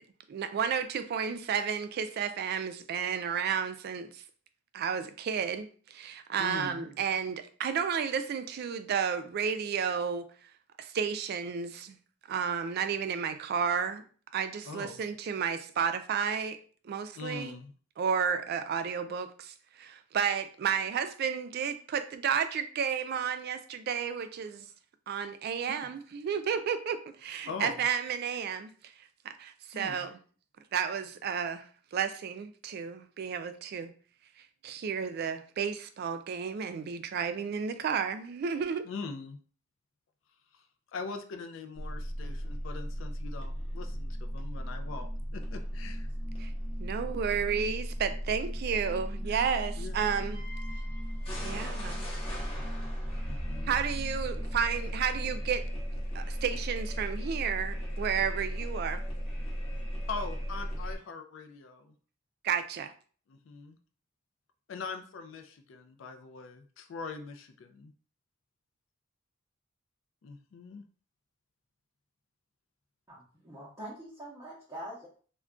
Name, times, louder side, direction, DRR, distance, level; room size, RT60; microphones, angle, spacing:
voice 1, 0.3-4.2 4.7-10.3 10.8-12.0 12.3-14.0 14.3-16.6 16.8-17.6 18.0-24.7 25.1-28.9 29.2-30.2 30.7-31.7 31.9-33.9 34.6-38.9 46.4-46.5 46.8-50.4 51.4-52.1 53.6-55.7 56.1-59.0 62.4-62.9, right 7 dB, 50° right, 0.3 m, -32 dB
voice 2, 6.4-6.9 14.6-15.0 17.2-17.7 25.7-26.0 27.5-27.8 29.7-30.0 38.8-39.4 40.9-46.1 49.8-50.0 53.3-53.8 60.1-61.9 63.3-63.8 64.7-67.9 70.2-70.8, left 4 dB, 65° left, 0.4 m, -42 dB
sound 1, 41.8-61.0, equal, 30° left, 0.8 m, -36 dB
voice 3, 73.1-75.1, right 1 dB, 15° right, 0.6 m, -44 dB
2.3 x 2.2 x 3.6 m
head